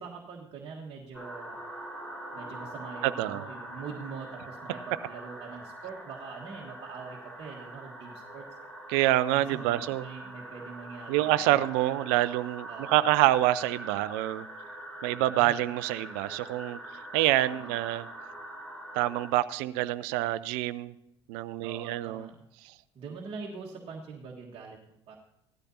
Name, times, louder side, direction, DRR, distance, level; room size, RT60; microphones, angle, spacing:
voice 1, 0.0-1.6 2.3-8.5 9.3-12.2 12.7-13.1 15.0-15.6 17.4-17.8 21.6-22.4 22.9-25.2, right 5 dB, 40° right, -2 dB, 1.5 m, -44 dB
sound 1, 1.1-19.3, right 1 dB, 5° left, 4.4 m, -43 dB
voice 2, 3.0-3.4 8.9-10.1 11.1-14.5 15.0-16.8 17.1-18.1 19.0-20.9 21.3-22.3, right 15 dB, 60° right, 17 dB, 0.5 m, -26 dB
17.0 x 13.0 x 2.8 m, 0.80 s
figure-of-eight pair, 70°, 15 cm